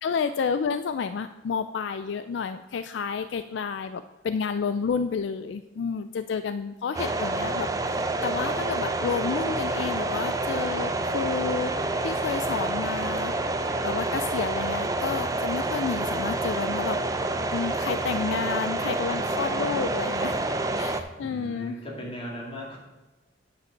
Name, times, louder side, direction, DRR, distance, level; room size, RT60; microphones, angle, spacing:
voice 1, 0.0-11.7 12.0-17.0 17.5-20.4 20.8-21.8, left 5 dB, 65° left, 11 dB, 0.3 m, -30 dB
sound 1, 6.9-21.0, right 2 dB, 15° right, 0.5 m, -28 dB
voice 2, 21.2-22.8, equal, 30° left, -2 dB, 2.2 m, -37 dB
9.2 x 5.1 x 6.6 m, 1.2 s
head